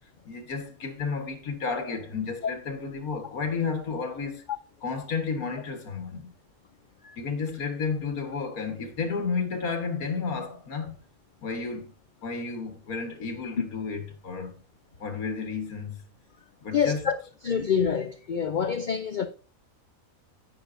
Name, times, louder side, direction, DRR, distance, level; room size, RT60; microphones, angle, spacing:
voice 1, 0.3-4.4 4.8-6.3 7.2-10.9 11.4-11.9 12.2-14.6 15.0-16.0 16.6-17.1, left 5 dB, 85° left, 1.8 m, -32 dB
voice 2, 16.7-17.2 17.4-19.3, left 7 dB, 70° left, 0.4 m, -26 dB
10.5 x 8.6 x 2.6 m
omnidirectional pair, 1.5 m